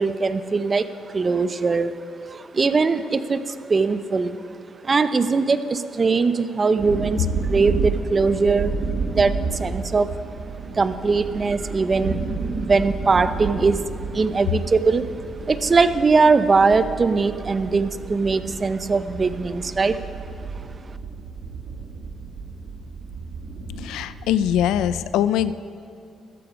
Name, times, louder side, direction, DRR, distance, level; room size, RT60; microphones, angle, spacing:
voice 1, 0.0-2.0 2.3-4.4 4.8-8.7 9.1-10.1 10.7-15.1 15.5-20.0 20.5-20.6, right 4 dB, 35° right, 12 dB, 0.6 m, -21 dB
sound 1, 6.8-25.0, right 4 dB, 85° right, 2.3 m, -31 dB
voice 2, 23.8-25.5, left 10 dB, 90° left, 15 dB, 0.4 m, -22 dB
14.0 x 12.5 x 4.9 m, 2.5 s
cardioid pair, 90°, 0 cm